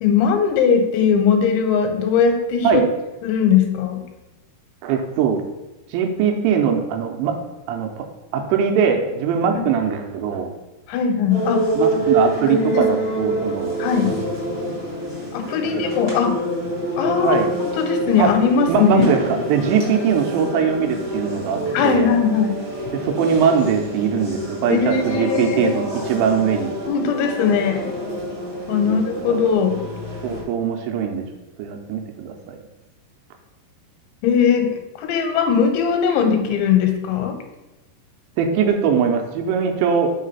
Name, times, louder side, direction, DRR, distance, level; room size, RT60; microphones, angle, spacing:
voice 1, 0.0-2.8 3.2-4.0 9.5-9.6 10.9-11.7 12.5-12.8 13.8-14.1 15.3-16.4 17.0-17.4 17.8-19.0 21.7-22.6 24.7-25.7 26.9-27.9 28.7-29.8 34.2-37.4, left 6 dB, 90° left, 5 dB, 3.2 m, -19 dB
voice 2, 4.8-5.4 5.9-7.4 7.7-8.1 8.3-10.5 11.8-13.8 15.7-15.8 17.2-17.5 18.2-18.3 18.7-22.2 22.9-26.7 28.8-29.4 30.2-31.2 31.6-32.6 38.4-40.1, right 7 dB, 85° right, 3 dB, 2.9 m, -21 dB
sound 1, 11.3-30.4, right 1 dB, 25° right, 1.2 m, -26 dB
6.5 x 3.2 x 5.3 m, 1.0 s
omnidirectional pair, 5.1 m